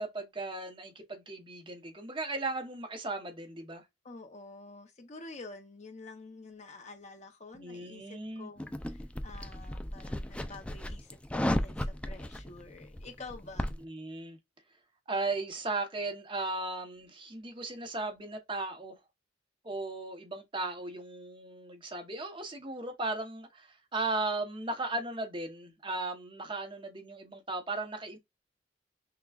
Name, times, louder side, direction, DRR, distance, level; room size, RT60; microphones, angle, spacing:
voice 1, 0.0-3.8 7.5-8.5 13.8-14.4 15.1-19.0 19.6-28.2, right 2 dB, 25° right, 1.0 m, -36 dB
voice 2, 4.0-13.7, left 3 dB, 40° left, 0.8 m, -48 dB
sound 1, 8.6-13.8, left 1 dB, 5° left, 0.3 m, -35 dB
5.9 x 2.3 x 2.4 m
head